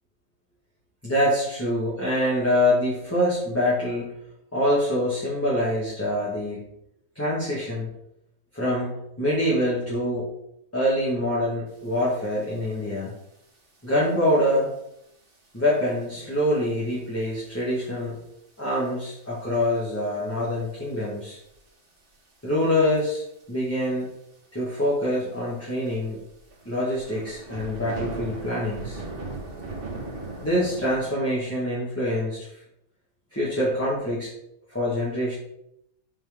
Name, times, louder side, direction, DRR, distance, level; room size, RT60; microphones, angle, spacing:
voice 1, 1.0-4.1 4.5-6.7 7.1-7.9 8.5-10.3 10.7-13.1 13.8-14.7 15.5-18.2 18.6-21.4 22.4-23.2 23.5-24.1 24.5-26.2 26.6-29.0 30.4-32.5 33.3-34.3 34.7-35.4, left 1 dB, 10° left, -8 dB, 1.5 m, -25 dB
sound 1, 12.3-12.4 12.7-13.1 13.7-13.9 14.5-14.6 15.3-15.4 15.7-15.8 16.0-16.1 17.2-17.5 17.9-18.0 18.8-18.9 19.5-19.9 20.3-20.4 21.0-21.7 22.7-23.0 23.3-23.4 23.7-23.8 24.0-24.1 24.7-24.8 25.2-25.3 25.9-31.0, right 2 dB, 30° right, 2.3 m, -37 dB
7.1 x 4.5 x 3.6 m, 0.78 s
omnidirectional pair, 1.9 m